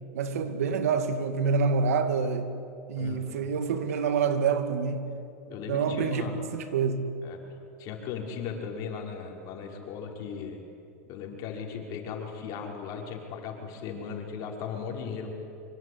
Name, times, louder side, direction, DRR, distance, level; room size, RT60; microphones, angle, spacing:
voice 1, 0.1-2.5 2.9-5.1 5.7-7.1, right 5 dB, 85° right, 2.3 m, -27 dB
voice 2, 3.0-3.3 5.5-6.4 7.2-7.4 7.8-10.6 11.1-15.3, left 6 dB, 50° left, 5.8 m, -37 dB
25.0 x 24.0 x 9.8 m
supercardioid pair, 120°, 8 cm